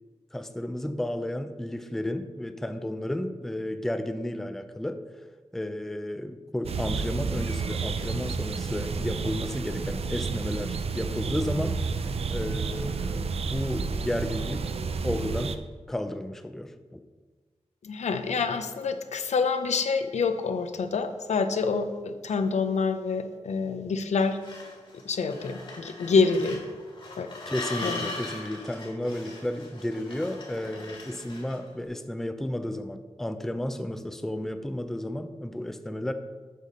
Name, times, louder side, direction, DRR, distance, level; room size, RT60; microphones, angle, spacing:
voice 1, 0.3-5.0 5.5-11.7 12.3-14.7 15.0-15.6 15.9-17.0 27.5-36.1, left 1 dB, 5° left, 9 dB, 0.4 m, -32 dB
sound 1, 6.6-15.6, right 5 dB, 60° right, 0.5 m, -31 dB
voice 2, 17.8-24.4 25.0-26.6 27.2-27.3 27.8-28.1, left 4 dB, 90° left, 8 dB, 0.7 m, -27 dB
sound 2, 24.2-31.7, left 3 dB, 45° left, 1.9 m, -40 dB
8.2 x 4.2 x 6.4 m, 1.3 s
wide cardioid pair, 145°, 11 cm